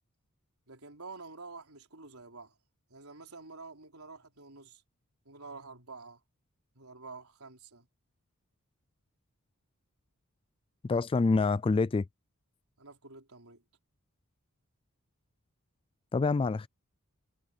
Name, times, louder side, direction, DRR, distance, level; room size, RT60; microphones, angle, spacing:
voice 1, 0.7-2.6 2.9-4.8 5.2-6.2 6.7-7.9 12.8-13.6, right 3 dB, 75° right, 4.5 m, -48 dB
voice 2, 10.8-12.0 16.1-16.7, left 4 dB, 25° left, 0.3 m, -26 dB
head